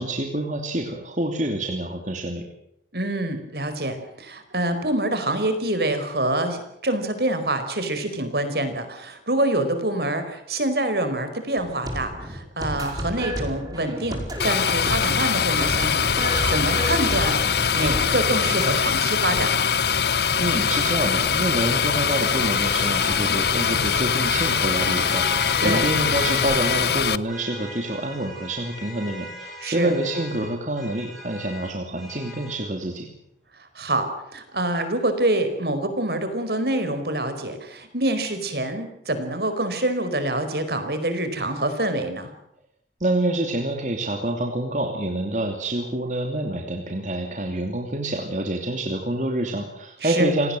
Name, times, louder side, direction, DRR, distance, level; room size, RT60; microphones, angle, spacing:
voice 1, 0.0-2.4 20.4-33.1 43.0-50.6, right 1 dB, 45° right, 3 dB, 2.8 m, -27 dB
voice 2, 2.9-19.7 25.6-25.8 29.6-29.9 33.7-42.3 50.0-50.3, right 1 dB, 65° right, 9 dB, 4.8 m, -26 dB
sound 1, 11.6-18.7, equal, 20° right, 5.1 m, -32 dB
sound 2, 14.4-27.2, left 6 dB, 65° left, 0.9 m, -22 dB
sound 3, 20.6-26.9 27.3-32.6, left 2 dB, ahead, 7.9 m, -37 dB
28.0 x 19.0 x 7.8 m, 0.78 s
head